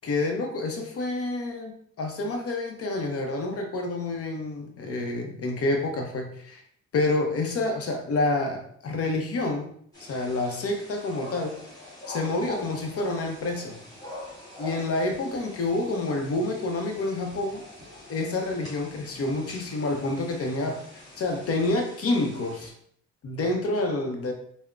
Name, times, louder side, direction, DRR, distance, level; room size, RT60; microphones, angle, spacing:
voice 1, 0.0-6.6 6.9-9.7 10.0-11.6 12.1-13.8 14.6-17.6 18.1-22.7 23.2-24.3, left 2 dB, 50° left, 3 dB, 0.7 m, -28 dB
sound 1, 9.9-22.7, left 1 dB, 10° left, 1.4 m, -44 dB
3.4 x 2.1 x 2.4 m, 0.63 s
cardioid pair, 90°, 30 cm